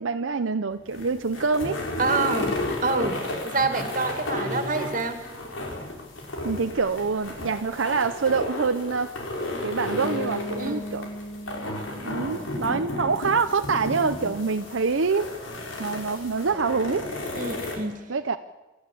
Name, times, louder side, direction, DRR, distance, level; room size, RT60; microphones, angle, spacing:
voice 1, 0.0-1.8 6.4-9.1 9.6-11.1 12.0-15.3 15.8-17.1 18.1-18.4, right 4 dB, 80° right, 8 dB, 0.7 m, -25 dB
sound 1, 0.7-17.8, left 1 dB, 85° left, 4.9 m, -33 dB
voice 2, 2.0-3.2 3.4-5.2 10.6-10.9 17.4-17.9, right 3 dB, 40° right, 6 dB, 2.3 m, -27 dB
Bass guitar, 10.0-13.9, left 2 dB, 25° left, 1.0 m, -37 dB
25.5 x 13.0 x 8.4 m, 1.2 s
head